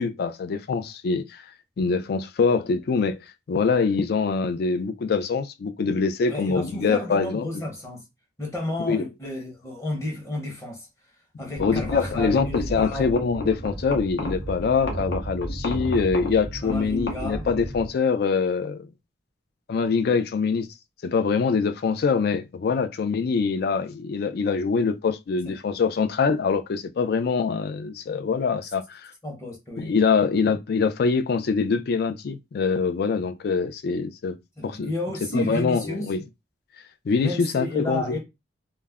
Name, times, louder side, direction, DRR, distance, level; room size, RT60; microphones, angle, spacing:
voice 1, 0.0-1.4 1.8-3.2 3.5-7.5 8.8-9.0 11.6-18.9 19.7-20.7 21.0-29.1 29.8-34.4 34.6-34.9 35.3-36.2 37.1-38.2, left 5 dB, 60° left, 0.3 m, -24 dB
voice 2, 6.3-8.0 8.4-10.9 11.4-13.1 16.6-17.4 25.4-25.6 29.2-29.9 34.6-36.1 37.1-38.2, left 1 dB, 15° left, 0.8 m, -32 dB
sound 1, 11.5-17.9, equal, 75° left, 0.8 m, -33 dB
2.3 x 2.0 x 3.3 m
head